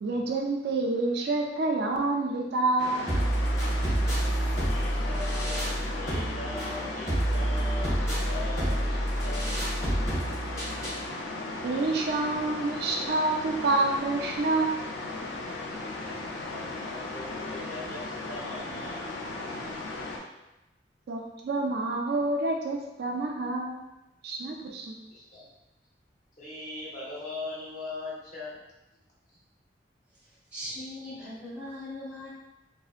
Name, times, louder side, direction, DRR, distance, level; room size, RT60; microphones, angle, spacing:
voice 1, 0.0-3.3 11.6-14.8 21.1-23.9 24.2-25.0, right 2 dB, 65° right, 1 dB, 0.4 m, -28 dB
sound 1, 2.8-20.2, left 2 dB, 85° left, 0.4 m, -36 dB
sound 2, 3.1-11.1, right 1 dB, 20° left, 0.8 m, -28 dB
voice 2, 4.6-5.7 6.0-9.5 16.0-16.2 16.4-19.7 25.1-25.4 26.4-28.6 29.3-29.4 31.0-31.1, left 2 dB, 50° left, -7 dB, 0.8 m, -41 dB
voice 3, 30.2-32.3, left 1 dB, 10° right, -8 dB, 0.6 m, -40 dB
2.7 x 2.0 x 2.4 m, 0.95 s
head